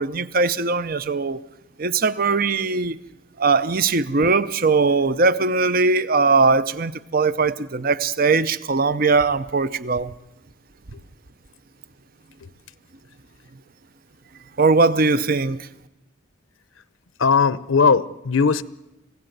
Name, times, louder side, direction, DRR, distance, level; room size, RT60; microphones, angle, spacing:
voice 1, 0.0-1.4 1.8-3.0 3.4-10.1 14.6-15.6, right 4 dB, 45° right, 0.7 m, -20 dB
voice 2, 17.2-18.6, left 5 dB, 85° left, 0.7 m, -18 dB
25.5 x 16.5 x 7.9 m
head